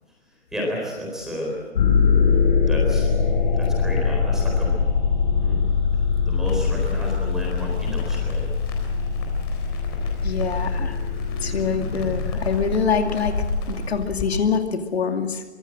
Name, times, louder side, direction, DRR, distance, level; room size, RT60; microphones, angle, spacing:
voice 1, 0.5-1.5 2.7-3.1 3.5-4.8 5.3-5.6 6.2-8.5, equal, ahead, -2 dB, 4.0 m, -31 dB
sound 1, 1.8-13.7, left 5 dB, 45° left, 4.2 m, -23 dB
Crackle, 6.4-14.2, left 3 dB, 20° left, 3.9 m, -33 dB
voice 2, 10.2-11.0 11.4-13.3 13.7-15.4, left 6 dB, 65° left, 5 dB, 2.5 m, -25 dB
24.0 x 22.5 x 7.6 m, 1.3 s
hypercardioid pair, 175°, 34 cm